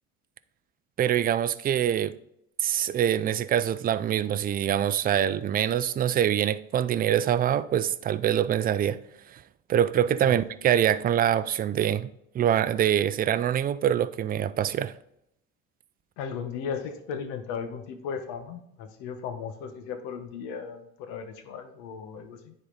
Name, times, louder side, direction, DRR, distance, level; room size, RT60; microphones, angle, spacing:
voice 1, 1.0-2.1 2.6-9.0 9.3-9.4 9.7-14.9, right 10 dB, 30° right, 0.4 m, -24 dB
voice 2, 16.2-22.5, left 6 dB, 80° left, 1.2 m, -36 dB
9.8 x 4.2 x 3.9 m
supercardioid pair, 105°, 29 cm